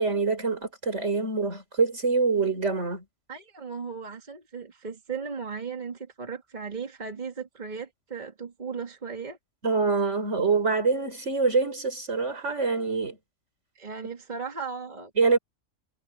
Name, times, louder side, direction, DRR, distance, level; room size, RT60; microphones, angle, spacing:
voice 1, 0.0-3.0 9.6-13.2 15.2-15.4, right 4 dB, 65° right, 4.7 m, -25 dB
voice 2, 3.3-9.4 13.8-15.1, right 5 dB, 35° right, 2.1 m, -36 dB
omnidirectional pair, 1.3 m